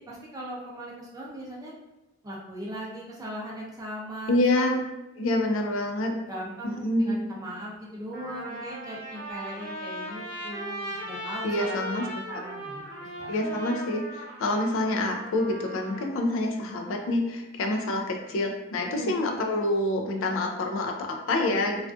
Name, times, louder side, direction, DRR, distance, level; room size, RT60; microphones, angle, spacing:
voice 1, 0.0-1.7 2.2-4.7 6.3-12.8 13.2-13.3 19.0-19.1, equal, 15° right, -4 dB, 0.4 m, -39 dB
voice 2, 4.3-4.8 5.2-6.2 6.6-7.2 11.4-12.4 13.3-21.8, left 1 dB, 75° left, 3 dB, 0.4 m, -27 dB
Trumpet, 7.4-7.5 8.1-16.1, right 1 dB, 50° right, 0.7 m, -38 dB
2.3 x 2.3 x 2.4 m, 0.96 s
head